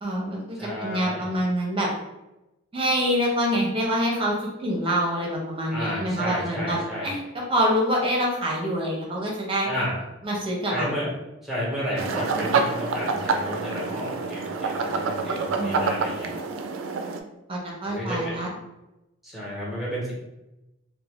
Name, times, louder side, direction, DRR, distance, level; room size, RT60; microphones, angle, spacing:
voice 1, 0.0-1.9 2.7-4.3 4.6-7.2 7.5-9.7 10.2-10.9 15.5-15.8 17.5-18.5, equal, 30° right, -2 dB, 0.7 m, -26 dB
voice 2, 0.6-1.3 5.7-7.1 9.7-10.0 10.7-11.1 11.4-16.4 17.9-18.4 19.2-20.1, equal, ahead, -7 dB, 1.0 m, -31 dB
sound 1, 12.0-17.2, right 4 dB, 80° right, 0.3 m, -27 dB
2.5 x 2.1 x 3.1 m, 0.95 s
head